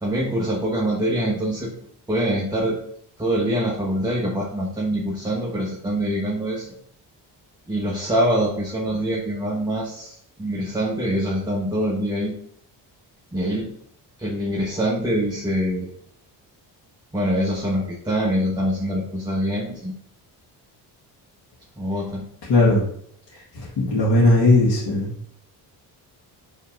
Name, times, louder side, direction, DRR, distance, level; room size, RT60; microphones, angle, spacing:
voice 1, 0.0-1.7 2.1-2.8 3.2-6.7 7.7-12.3 13.3-13.7 14.2-15.9 17.1-19.9 21.8-22.3, equal, 10° right, -3 dB, 1.0 m, -24 dB
voice 2, 22.5-22.8 23.5-25.1, left 2 dB, 70° left, -6 dB, 1.8 m, -17 dB
5.6 x 3.4 x 5.1 m, 0.67 s
cardioid pair, 130°, 42 cm